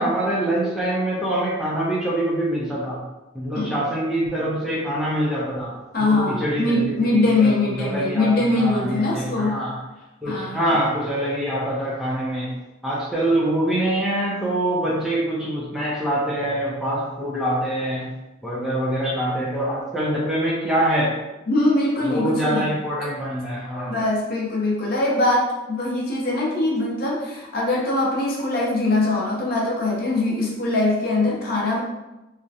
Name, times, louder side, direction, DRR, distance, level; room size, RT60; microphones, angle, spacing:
voice 1, 0.0-3.0 3.3-9.8 10.2-12.5 12.8-18.1 18.4-21.2 22.0-24.0, right 1 dB, ahead, -6 dB, 0.4 m, -24 dB
voice 2, 5.9-9.7 10.3-10.8 21.5-22.7 23.9-31.8, left 2 dB, 50° left, -3 dB, 0.6 m, -22 dB
2.4 x 2.0 x 2.7 m, 1.0 s
head